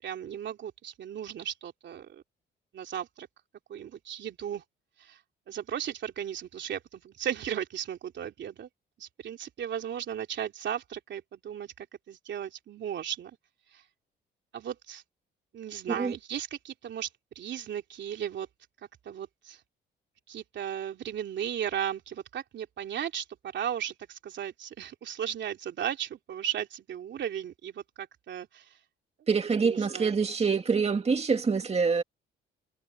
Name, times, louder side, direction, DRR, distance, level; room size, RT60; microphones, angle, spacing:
voice 1, 0.0-2.2 2.7-3.3 3.7-4.6 5.0-5.2 5.5-8.7 9.0-13.4 13.7-13.8 14.5-15.0 15.5-17.1 17.3-18.5 19.0-19.6 20.3-23.2 23.5-28.7 29.6-30.1, right 9 dB, 65° right, 3.1 m, -36 dB
voice 2, 29.3-32.0, right 5 dB, 30° right, 2.3 m, -26 dB
cardioid pair, 90°, 20 cm